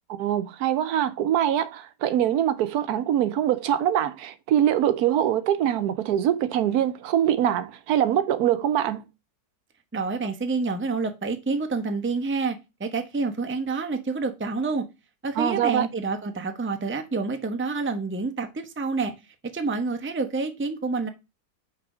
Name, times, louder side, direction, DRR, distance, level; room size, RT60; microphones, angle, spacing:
voice 1, 0.1-9.0 15.4-15.9, right 10 dB, 80° right, 1.2 m, -23 dB
voice 2, 9.9-14.8 15.2-19.1 19.5-21.1, right 4 dB, 10° right, 0.6 m, -28 dB
6.0 x 4.2 x 6.1 m
omnidirectional pair, 1.6 m